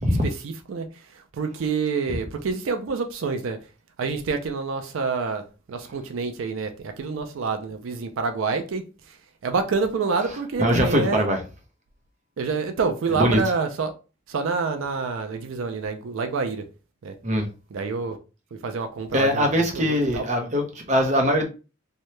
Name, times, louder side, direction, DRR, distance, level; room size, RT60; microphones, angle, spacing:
voice 1, 0.4-0.9 1.3-3.6 4.0-9.2 9.4-11.2 12.4-13.9 14.3-16.6 17.0-17.1 17.7-18.2 18.5-20.2, right 4 dB, 85° right, 0.4 m, -27 dB
voice 2, 10.6-11.4 13.2-13.4 17.2-17.5 19.1-21.4, equal, 35° right, 0.6 m, -22 dB
2.7 x 2.2 x 3.1 m
head